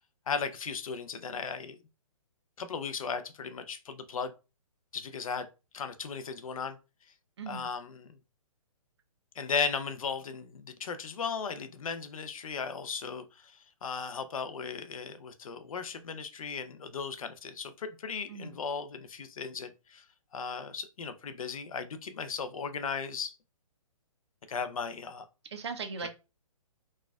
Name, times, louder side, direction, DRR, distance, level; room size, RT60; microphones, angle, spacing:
voice 1, 0.3-1.8 2.6-4.3 4.9-5.5 5.7-6.8 7.5-8.2 9.4-20.0 20.3-23.4 24.5-25.3 26.0-26.1, left 5 dB, 70° left, 0.6 m, -36 dB
voice 2, 25.5-26.1, right 5 dB, 50° right, 0.6 m, -38 dB
4.1 x 2.4 x 2.3 m
hypercardioid pair, 170°, 19 cm